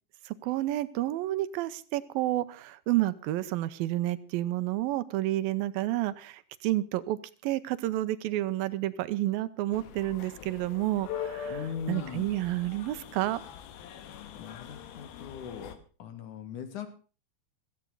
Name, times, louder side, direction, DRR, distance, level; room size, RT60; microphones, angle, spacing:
voice 1, 0.3-11.6 11.9-13.4, right 15 dB, 80° right, 14 dB, 2.6 m, -30 dB
sound 1, 9.7-15.8, left 8 dB, 90° left, 3.2 m, -42 dB
voice 2, 11.5-12.3 14.3-16.9, left 8 dB, 60° left, 8 dB, 3.0 m, -40 dB
16.0 x 14.5 x 3.9 m, 0.36 s
omnidirectional pair, 4.2 m